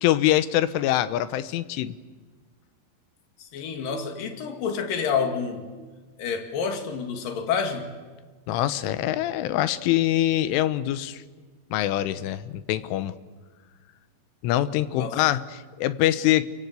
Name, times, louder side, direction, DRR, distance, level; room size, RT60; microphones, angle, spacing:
voice 1, 0.0-2.0 8.5-11.2 11.7-13.2 14.4-16.5, left 13 dB, 90° left, 13 dB, 3.5 m, -24 dB
voice 2, 3.4-5.6 6.2-7.9 15.0-15.2, left 6 dB, 55° left, 5 dB, 3.6 m, -28 dB
29.5 x 24.5 x 8.3 m, 1.4 s
omnidirectional pair, 5.5 m